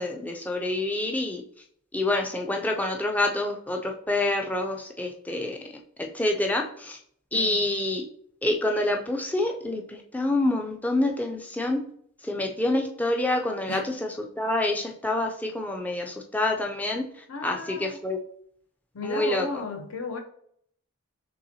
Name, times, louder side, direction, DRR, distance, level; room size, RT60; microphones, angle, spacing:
voice 1, 0.0-1.4 1.9-5.6 6.0-7.0 7.3-8.0 8.4-11.8 12.2-17.1 17.4-18.2 19.0-19.5, left 2 dB, 5° left, 0.3 m, -27 dB
voice 2, 17.3-18.0 18.9-20.2, left 4 dB, 75° left, 0.7 m, -34 dB
5.5 x 3.3 x 2.7 m
head